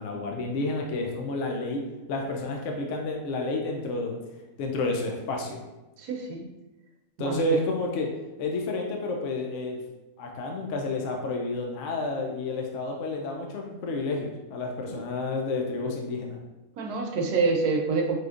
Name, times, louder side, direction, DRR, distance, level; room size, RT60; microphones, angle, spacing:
voice 1, 0.0-4.2 4.6-5.6 7.2-8.1 8.4-9.8 10.2-16.4, left 2 dB, 70° left, 2 dB, 0.7 m, -30 dB
voice 2, 6.0-6.5 7.2-7.6 14.9-15.0 16.8-18.2, right 4 dB, 75° right, 2 dB, 1.2 m, -27 dB
4.9 x 3.0 x 2.4 m, 1.0 s
omnidirectional pair, 1.7 m